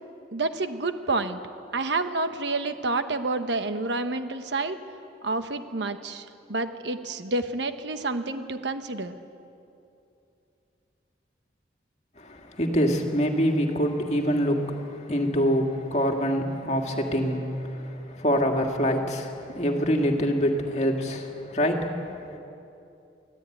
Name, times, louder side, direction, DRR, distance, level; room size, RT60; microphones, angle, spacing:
voice 1, 0.3-1.4 1.7-4.8 5.2-6.2 6.5-9.1, right 3 dB, 80° right, 9 dB, 1.1 m, -29 dB
voice 2, 12.2-22.4, equal, 35° left, 2 dB, 2.1 m, -25 dB
24.0 x 15.0 x 9.2 m, 2.7 s
head